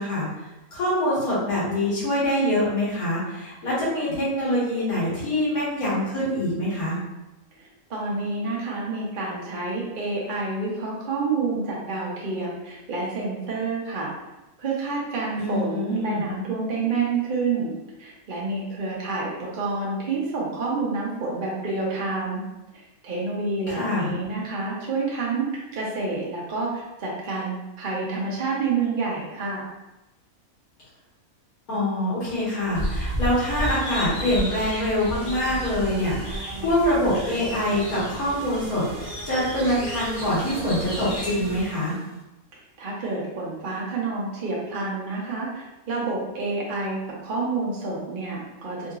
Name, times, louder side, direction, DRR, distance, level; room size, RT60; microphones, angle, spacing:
voice 1, 0.0-7.0 15.4-16.3 23.7-24.2 31.7-41.9, left 1 dB, 80° left, -9 dB, 2.0 m, -25 dB
voice 2, 7.6-14.1 14.6-22.4 22.7-29.6 42.8-48.9, right 3 dB, 45° right, -4 dB, 0.7 m, -28 dB
sound 1, 32.7-41.6, equal, 55° left, 1.3 m, -33 dB
sound 2, 35.1-42.2, right 4 dB, 75° right, 1.0 m, -40 dB
3.8 x 2.8 x 2.4 m, 0.99 s
omnidirectional pair, 1.5 m